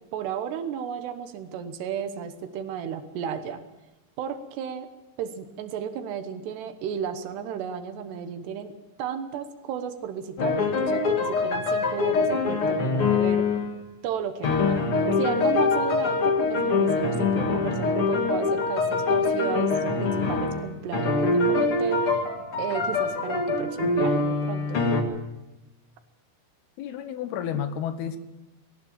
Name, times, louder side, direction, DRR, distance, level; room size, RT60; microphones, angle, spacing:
voice 1, 0.0-3.6 4.2-4.9 5.2-8.7 9.0-13.5 14.0-14.8 15.2-22.1 22.6-24.8, right 8 dB, 80° right, 9 dB, 3.2 m, -33 dB
sound 1, 10.4-13.7 14.4-20.7 20.9-25.0, left 3 dB, 45° left, 2.1 m, -24 dB
voice 2, 26.8-28.2, left 9 dB, 75° left, 10 dB, 2.9 m, -31 dB
20.0 x 18.5 x 7.3 m, 1.0 s
omnidirectional pair, 4.8 m